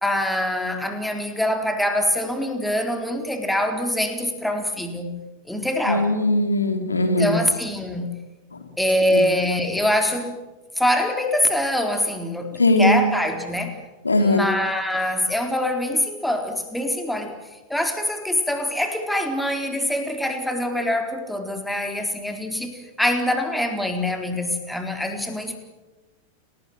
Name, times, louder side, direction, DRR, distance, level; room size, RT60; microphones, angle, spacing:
voice 1, 0.0-5.2 5.5-6.1 7.0-8.2 8.8-10.4 10.8-13.8 14.2-17.4 17.7-25.6, left 1 dB, 5° left, 5 dB, 4.0 m, -24 dB
voice 2, 5.9-7.4 9.1-9.2 12.6-13.0 14.0-14.5, left 2 dB, 80° left, 7 dB, 2.9 m, -19 dB
29.5 x 20.0 x 9.1 m, 1.1 s
figure-of-eight pair, 90°, 0 cm